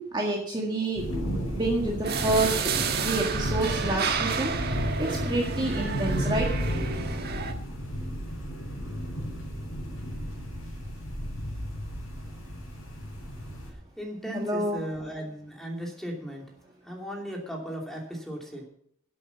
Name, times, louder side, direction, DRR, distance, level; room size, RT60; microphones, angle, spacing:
voice 1, 0.0-2.7 3.0-4.5 5.0-6.5 14.2-14.8, right 2 dB, 20° right, -1 dB, 1.8 m, -28 dB
sound 1, 1.0-13.7, equal, 80° left, 5.4 m, -33 dB
sound 2, 2.0-7.5, right 5 dB, 50° right, 1.4 m, -31 dB
voice 2, 14.0-16.4 16.9-18.6, equal, ahead, 0 dB, 2.8 m, -36 dB
12.0 x 8.4 x 7.2 m, 0.66 s
head